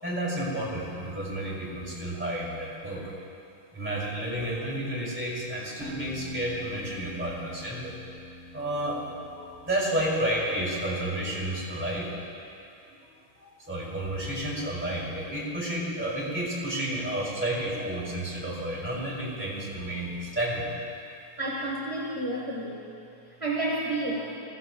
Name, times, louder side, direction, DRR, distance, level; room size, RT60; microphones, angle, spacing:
voice 1, 0.0-3.1 3.7-7.9 8.5-12.1 12.8-13.0 13.3-20.7, right 1 dB, 5° right, -6 dB, 2.4 m, -31 dB
sound 1, 5.8-10.5, equal, 85° right, 3.0 m, -45 dB
voice 2, 21.4-22.8 23.4-24.4, right 2 dB, 30° right, -4 dB, 0.6 m, -30 dB
16.0 x 15.0 x 2.2 m, 2.6 s
omnidirectional pair, 2.3 m